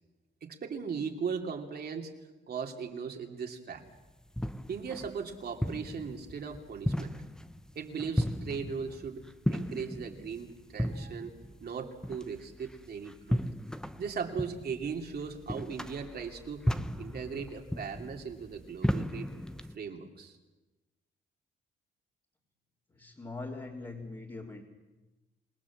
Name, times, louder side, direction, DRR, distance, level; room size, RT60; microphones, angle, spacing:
voice 1, 0.4-2.1 2.5-3.8 4.7-7.1 7.7-11.3 11.6-13.4 14.0-16.6 17.0-19.3 19.7-20.4, right 6 dB, 55° right, 3 dB, 3.0 m, -38 dB
sound 1, 3.9-19.8, equal, 5° left, 0.9 m, -36 dB
voice 2, 22.9-24.6, left 3 dB, 25° left, -4 dB, 3.5 m, -42 dB
28.0 x 18.0 x 7.4 m, 1.1 s
cardioid pair, 90°, 20 cm